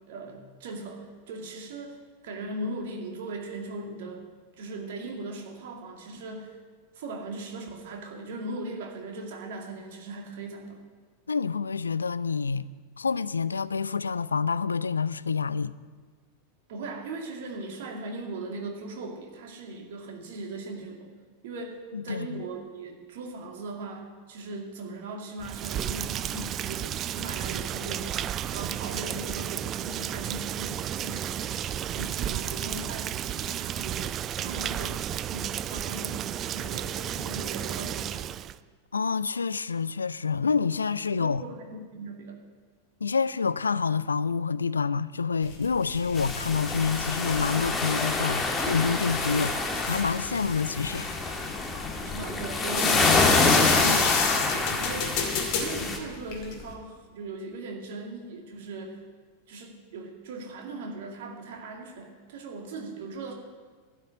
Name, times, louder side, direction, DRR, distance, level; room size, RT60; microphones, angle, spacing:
voice 1, 0.1-4.2 4.6-6.6 6.9-10.8 16.7-21.1 21.4-31.5 31.9-38.3 41.2-42.4 52.0-55.3 55.6-59.0 59.5-63.3, right 2 dB, 55° right, 2.3 m, -39 dB
voice 2, 11.3-12.7 13.0-15.7 21.9-22.4 38.9-41.4 43.0-49.5 49.9-51.1, left 5 dB, 75° left, 0.3 m, -27 dB
Rain, 25.4-38.6, right 10 dB, 30° right, 0.4 m, -32 dB
sound 1, 45.4-56.7, left 6 dB, 45° left, 2.4 m, -32 dB
sound 2, 46.2-56.0, left 3 dB, 15° left, 1.8 m, -27 dB
12.5 x 6.6 x 9.7 m
figure-of-eight pair, 90°, 0 cm